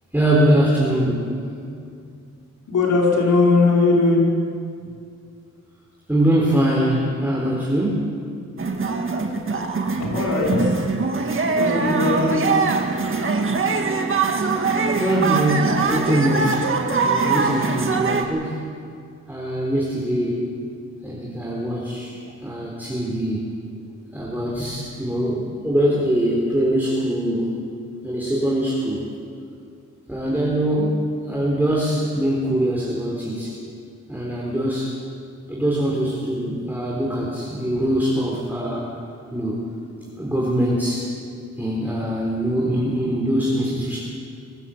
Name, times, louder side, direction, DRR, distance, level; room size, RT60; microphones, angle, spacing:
voice 1, 0.1-1.4 6.1-8.1 15.0-16.6 17.0-18.6 19.3-20.4 21.0-22.2 22.4-23.4 24.1-27.5 28.0-29.0 30.1-31.0 31.3-33.5 34.1-34.9 35.5-38.9 39.3-39.6 40.2-41.1 41.6-44.0, right 1 dB, 5° right, -5 dB, 4.1 m, -22 dB
voice 2, 2.7-4.2 9.9-11.2 11.5-12.7, left 3 dB, 85° left, -3 dB, 5.1 m, -20 dB
sound 1, 8.6-18.3, right 4 dB, 45° right, 1.9 m, -22 dB
23.5 x 15.0 x 7.4 m, 2.3 s
wide cardioid pair, 100°, 29 cm